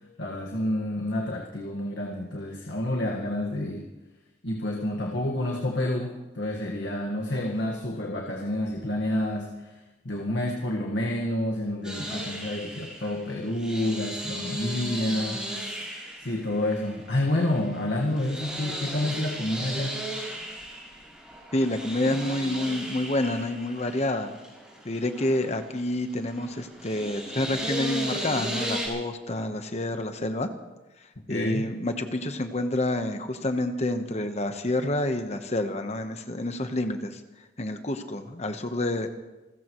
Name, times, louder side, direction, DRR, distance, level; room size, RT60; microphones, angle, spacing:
voice 1, 0.2-3.9 4.4-9.8 10.0-15.7 16.2-20.0 31.3-31.7, left 1 dB, 90° left, -1 dB, 1.7 m, -29 dB
sound 1, 11.8-28.9, equal, 5° right, 4.8 m, -36 dB
voice 2, 21.5-24.3 24.8-30.5 31.3-37.2 37.6-39.1, left 1 dB, 40° left, 7 dB, 1.1 m, -28 dB
28.5 x 14.5 x 3.1 m, 1.1 s
head